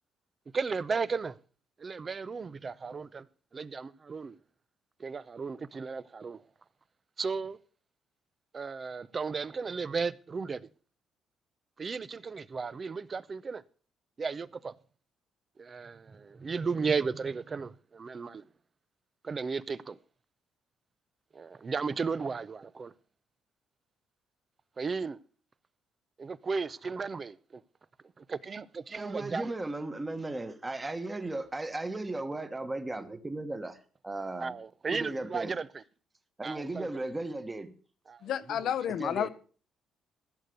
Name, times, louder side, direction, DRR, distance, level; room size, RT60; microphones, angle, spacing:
voice 1, 0.5-1.4 1.8-3.3 3.5-4.4 5.0-6.4 7.2-7.6 8.5-10.7 11.8-13.6 14.2-14.7 15.6-18.5 19.2-20.0 21.3-22.9 24.8-25.2 26.2-27.6 28.2-29.5 34.4-35.8 36.4-36.9 38.1-38.3, right 5 dB, 30° right, 0.6 m, -35 dB
voice 2, 29.0-33.8 34.0-34.6 34.9-35.5 36.4-37.7 39.0-39.3, right 2 dB, 15° right, 1.3 m, -36 dB
voice 3, 38.2-39.3, left 9 dB, 70° left, 0.8 m, -31 dB
15.0 x 6.6 x 6.8 m
cardioid pair, 120°, 0 cm